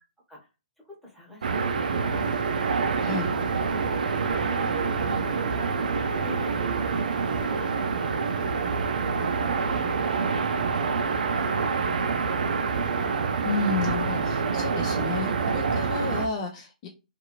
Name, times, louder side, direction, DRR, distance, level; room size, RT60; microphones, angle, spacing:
voice 1, 0.8-2.3 3.2-6.6 7.3-7.8 8.4-10.7 11.0-12.9, left 2 dB, ahead, -5 dB, 1.0 m, -46 dB
sound 1, 1.4-16.3, right 5 dB, 75° right, 0.4 m, -26 dB
voice 2, 3.0-3.3 13.4-16.9, left 4 dB, 35° left, 1 dB, 0.4 m, -31 dB
2.6 x 2.6 x 2.9 m, 0.29 s
hypercardioid pair, 140°, 4 cm